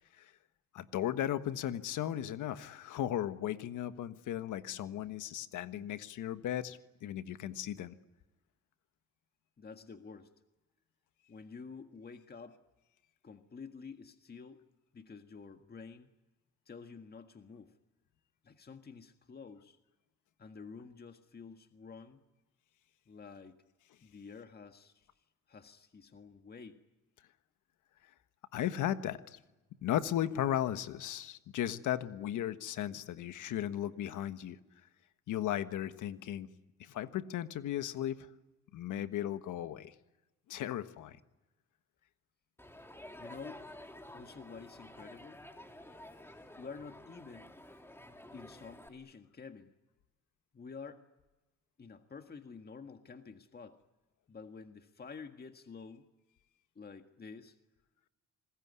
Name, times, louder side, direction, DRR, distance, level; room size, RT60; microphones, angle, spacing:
voice 1, 0.7-8.0 28.5-29.4 29.8-34.6 35.3-36.5 36.8-38.3 38.7-39.9 40.5-41.2, left 11 dB, 80° left, 11 dB, 1.5 m, -36 dB
voice 2, 9.6-10.3 11.3-12.6 13.2-14.6 14.9-16.1 16.7-17.7 18.4-19.8 20.4-22.2 23.1-23.6 24.0-26.8 43.2-43.6 44.1-45.4 46.6-47.5 48.3-49.7 50.5-51.0 51.8-53.8 54.3-56.1 56.8-57.6, left 5 dB, 30° left, 7 dB, 1.7 m, -50 dB
Crowd, 42.6-48.9, left 1 dB, 10° left, 2.9 m, -51 dB
27.0 x 20.5 x 9.7 m, 1.1 s
cardioid pair, 90°, 30 cm